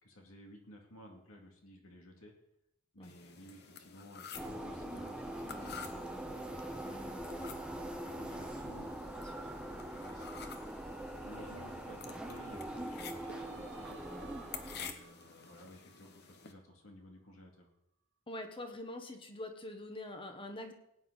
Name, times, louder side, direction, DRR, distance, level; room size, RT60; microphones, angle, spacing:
voice 1, 0.0-2.3 2.9-7.3 7.7-8.9 9.4-10.7 11.2-14.0 14.7-17.7, left 1 dB, 75° left, 1 dB, 2.6 m, -55 dB
sound 1, 3.0-16.5, left 6 dB, 50° left, 1.0 m, -51 dB
sound 2, 4.3-14.9, right 1 dB, 5° right, 0.8 m, -43 dB
voice 2, 9.2-9.5 18.3-20.7, left 1 dB, 25° left, 5 dB, 1.3 m, -44 dB
Singing, 11.4-16.7, right 4 dB, 60° right, 1.5 m, -58 dB
17.5 x 9.3 x 4.1 m, 0.80 s
head